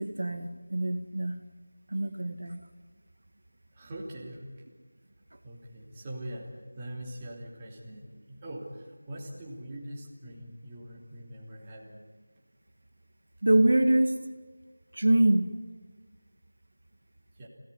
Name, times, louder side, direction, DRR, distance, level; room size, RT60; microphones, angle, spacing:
voice 1, 0.0-1.4 1.9-2.6 13.4-14.2 14.9-15.5, right 1 dB, 65° right, 6 dB, 2.0 m, -24 dB
voice 2, 3.7-4.6 5.4-12.1 17.4-17.5, right 1 dB, 15° right, -3 dB, 3.1 m, -42 dB
27.0 x 18.0 x 9.8 m, 1.4 s
figure-of-eight pair, 175°, 0 cm